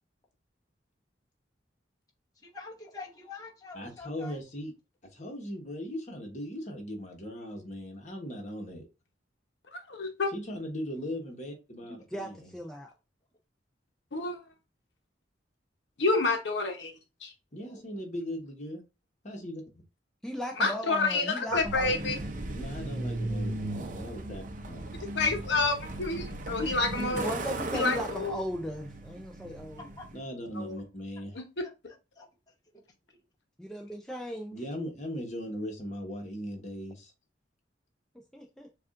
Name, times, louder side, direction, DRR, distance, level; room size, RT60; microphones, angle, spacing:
voice 1, 2.4-4.4 17.6-17.9 30.0-30.1 32.2-32.3, left 4 dB, 20° left, 1.0 m, -45 dB
voice 2, 3.7-4.7 5.1-8.9 10.3-12.5 17.5-18.8 19.2-19.6 22.5-24.8 27.1-27.2 30.1-31.4 34.5-37.1, equal, 40° left, 1.2 m, -38 dB
voice 3, 9.7-10.3 14.1-14.4 16.0-16.9 17.2-17.3 20.6-22.2 25.1-27.3 27.7-28.4 30.6-30.8, left 3 dB, 70° left, 0.9 m, -28 dB
voice 4, 12.1-12.9 20.2-22.1 27.0-29.9 33.6-34.6 38.3-38.7, equal, 5° left, 0.4 m, -37 dB
Truck, 21.5-30.2, right 2 dB, 45° right, 0.6 m, -37 dB
6.9 x 2.5 x 2.5 m
head